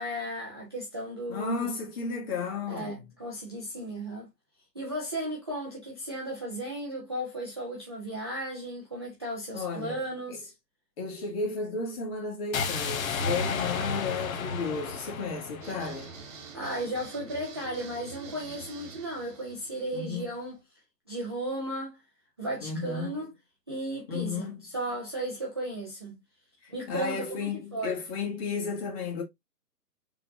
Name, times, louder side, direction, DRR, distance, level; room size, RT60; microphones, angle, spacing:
voice 1, 0.0-1.7 2.7-4.3 4.7-10.5 16.5-20.6 21.1-22.0 22.4-23.3 23.7-26.2 26.7-28.0, right 1 dB, 15° right, 0.4 m, -35 dB
voice 2, 1.3-3.1 9.5-10.0 10.3-10.4 11.0-16.1 19.9-20.3 22.6-23.2 24.1-24.7 26.6-29.2, left 4 dB, 35° left, 2.0 m, -33 dB
sound 1, 12.5-16.6, left 5 dB, 55° left, 0.9 m, -32 dB
sound 2, 15.6-20.6, right 6 dB, 50° right, 1.1 m, -47 dB
4.2 x 3.6 x 2.7 m
hypercardioid pair, 140°, 49 cm